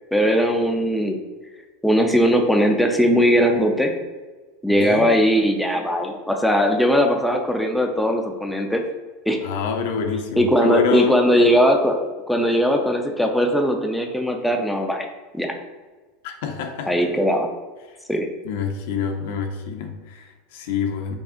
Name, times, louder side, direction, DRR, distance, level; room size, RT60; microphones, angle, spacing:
voice 1, 0.1-1.2 1.8-3.9 4.6-8.8 9.3-9.4 10.4-12.0 12.3-15.1 15.3-15.6 16.9-17.5 18.1-18.3, equal, ahead, 2 dB, 0.4 m, -19 dB
voice 2, 4.7-5.1 9.4-11.4 16.2-17.1 18.4-21.1, left 6 dB, 75° left, 5 dB, 0.5 m, -27 dB
4.7 x 2.7 x 2.5 m, 1.3 s
supercardioid pair, 130°, 0 cm